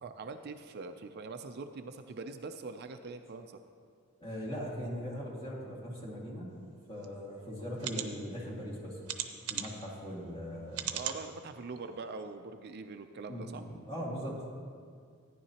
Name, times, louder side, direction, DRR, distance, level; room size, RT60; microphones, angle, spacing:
voice 1, 0.0-3.6 10.9-13.7, right 3 dB, 50° right, 7 dB, 0.4 m, -43 dB
voice 2, 4.2-6.5 6.9-9.0 9.5-10.9 13.3-14.6, equal, 25° left, -4 dB, 2.0 m, -40 dB
sound 1, 7.0-7.1 7.8-8.1 9.1-9.8 10.7-11.2 11.8-11.9 12.2-12.3, right 10 dB, 90° right, 0.7 m, -36 dB
14.0 x 10.0 x 2.9 m, 2.2 s
head